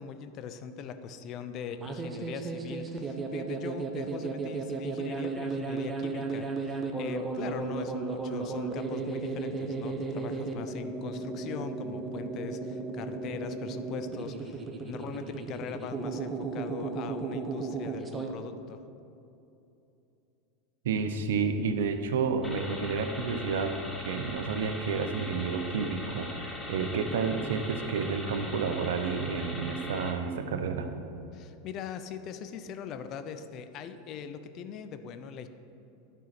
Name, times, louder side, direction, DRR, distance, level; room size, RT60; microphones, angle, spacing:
voice 1, 0.0-18.8 31.3-35.5, left 7 dB, 45° left, 9 dB, 0.6 m, -41 dB
sound 1, 1.7-18.3, right 4 dB, 20° right, 1.0 m, -35 dB
voice 2, 20.8-30.9, right 5 dB, 75° right, 7 dB, 0.7 m, -30 dB
sound 2, 22.4-30.1, left 1 dB, 10° left, 1.5 m, -41 dB
11.0 x 4.5 x 5.9 m, 2.8 s
hypercardioid pair, 95°, 0 cm